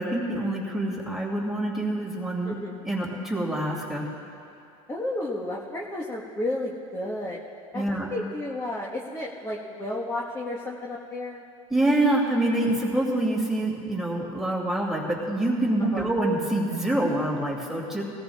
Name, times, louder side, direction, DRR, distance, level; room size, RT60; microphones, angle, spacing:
voice 1, 0.0-2.6 2.8-4.1 7.7-8.1 11.7-18.0, right 1 dB, ahead, -3 dB, 2.5 m, -26 dB
voice 2, 2.4-2.8 4.9-7.4 7.7-7.8 8.1-11.4 15.9-16.1, left 1 dB, 15° left, -4 dB, 1.3 m, -32 dB
20.0 x 13.5 x 2.4 m, 2.6 s
hypercardioid pair, 95°, 18 cm